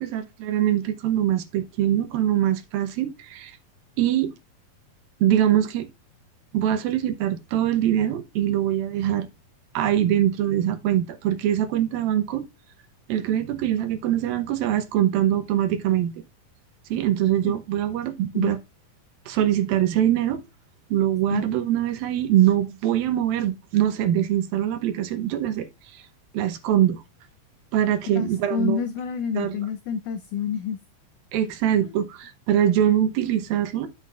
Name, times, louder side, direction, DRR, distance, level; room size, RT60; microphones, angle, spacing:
voice 1, 0.0-3.6 4.0-4.3 5.2-5.9 6.5-9.3 9.7-12.4 13.1-16.1 16.9-18.6 19.3-20.4 20.9-25.7 25.9-26.0 26.3-27.0 27.7-28.8 29.4-29.5 31.3-33.9, right 11 dB, 80° right, 2.7 m, -23 dB
voice 2, 28.2-30.8 31.8-31.9, left 7 dB, 90° left, 1.7 m, -28 dB
10.0 x 7.4 x 2.4 m
omnidirectional pair, 4.3 m